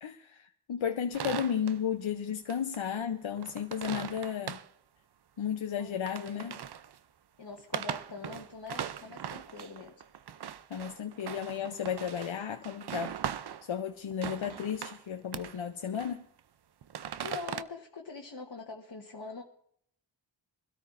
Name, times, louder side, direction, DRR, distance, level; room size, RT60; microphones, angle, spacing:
voice 1, 0.0-4.6 5.4-6.5 10.7-13.2 13.6-16.3, left 8 dB, 75° left, 0.8 m, -34 dB
sound 1, 1.1-1.8 2.5-2.8 3.1-4.7 5.9-7.0 7.6-13.7 14.1-15.0 15.3-15.6 15.9-16.4 16.8-17.6, right 9 dB, 55° right, 0.6 m, -40 dB
voice 2, 5.8-6.6 7.4-9.9 17.2-19.4, left 4 dB, 55° left, 1.3 m, -44 dB
23.0 x 13.0 x 2.6 m
cardioid pair, 40°, 47 cm